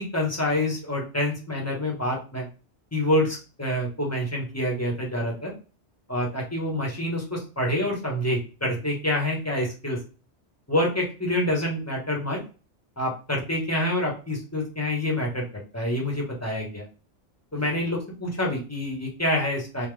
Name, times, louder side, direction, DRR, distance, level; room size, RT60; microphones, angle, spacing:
voice 1, 0.0-2.5 2.9-5.5 6.1-10.0 10.7-12.4 13.0-15.4 15.7-16.8 17.5-19.9, left 1 dB, 15° left, -2 dB, 1.2 m, -27 dB
3.6 x 2.9 x 3.3 m, 0.34 s
omnidirectional pair, 1.2 m